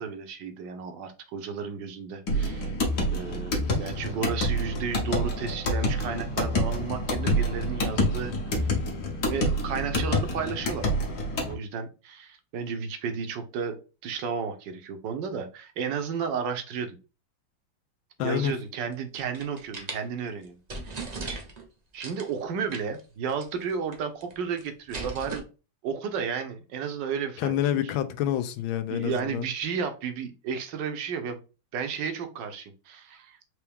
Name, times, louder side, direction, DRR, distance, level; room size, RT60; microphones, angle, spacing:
voice 1, 0.0-2.7 3.1-8.7 9.3-13.8 14.0-17.0 18.2-20.6 20.8-21.0 21.9-25.4 25.8-27.6 28.9-31.4 31.7-33.4, right 6 dB, 70° right, 1.3 m, -33 dB
sound 1, 2.3-11.5, left 1 dB, 55° left, 1.6 m, -27 dB
voice 2, 18.2-18.5 27.4-29.5, left 11 dB, 80° left, 1.3 m, -27 dB
sound 2, 18.9-20.0 20.4-20.5 20.7-21.6 22.0-22.3 22.7-23.0 23.3-23.4 23.7-24.3 24.6-25.4, right 3 dB, 40° right, 0.5 m, -37 dB
4.6 x 3.0 x 3.4 m
omnidirectional pair, 2.2 m